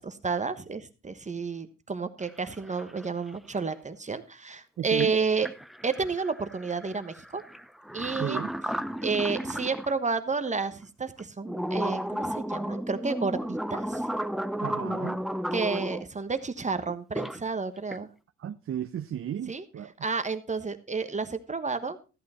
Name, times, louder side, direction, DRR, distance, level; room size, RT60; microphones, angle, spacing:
voice 1, 0.0-5.5 5.8-7.4 7.9-8.4 9.0-14.1 15.5-18.1 19.4-19.6 20.0-22.0, right 4 dB, 25° right, 1.2 m, -31 dB
sound 1, 2.2-2.3 2.6-3.4 5.0-5.1 5.4-9.9 10.5-10.6 11.2-16.0 16.9-17.4 17.8-18.1, equal, ahead, 0.6 m, -33 dB
voice 2, 4.8-5.1 8.2-8.5 14.6-15.2 18.4-19.9, right 9 dB, 45° right, 0.7 m, -33 dB
14.0 x 8.5 x 4.3 m
cardioid pair, 90°, 30 cm